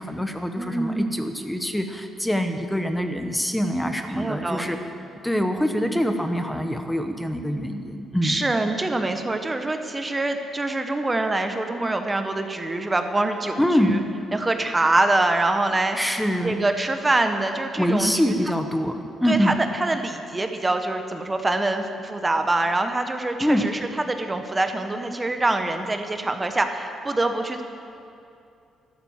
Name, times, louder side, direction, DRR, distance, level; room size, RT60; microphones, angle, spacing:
voice 1, 0.0-4.8 5.2-8.4 13.6-14.0 16.0-16.6 17.8-19.6 23.4-23.7, equal, 5° left, 6 dB, 1.1 m, -24 dB
voice 2, 0.6-1.2 4.1-4.7 8.2-14.0 14.3-16.0 16.4-18.1 19.3-23.8 24.1-27.6, right 2 dB, 20° right, 6 dB, 1.1 m, -25 dB
12.0 x 12.0 x 7.3 m, 2.6 s
cardioid pair, 90°, 0 cm